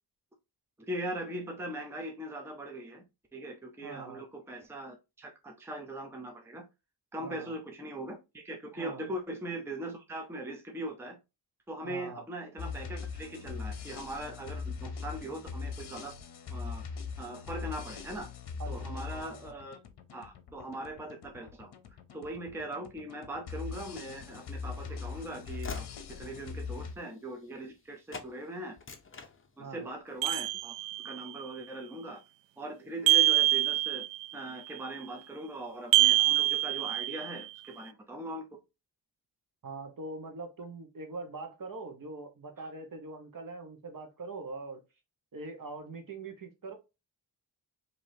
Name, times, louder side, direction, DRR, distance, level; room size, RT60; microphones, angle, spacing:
voice 1, 0.8-3.0 3.3-6.6 7.1-11.2 11.7-16.2 16.5-16.8 17.2-18.3 18.7-19.8 20.1-21.7 22.1-28.8 29.6-30.8 31.0-32.2 32.6-34.1 34.3-38.4, right 1 dB, 5° right, 0.6 m, -40 dB
voice 2, 3.8-4.2 7.2-7.5 8.8-9.1 11.8-12.2 18.6-19.5 29.6-29.9 39.6-44.8 45.3-46.7, right 3 dB, 50° right, 1.1 m, -43 dB
sound 1, 12.6-26.9, left 5 dB, 65° left, 0.8 m, -41 dB
Train / Slam, 24.2-27.8 28.1-28.3 28.7-29.9 30.3-30.6, left 5 dB, 30° left, 0.6 m, -44 dB
sound 2, 30.2-31.2 33.1-34.3 35.9-37.4, right 16 dB, 85° right, 0.6 m, -25 dB
4.8 x 2.8 x 2.7 m
wide cardioid pair, 140°, 43 cm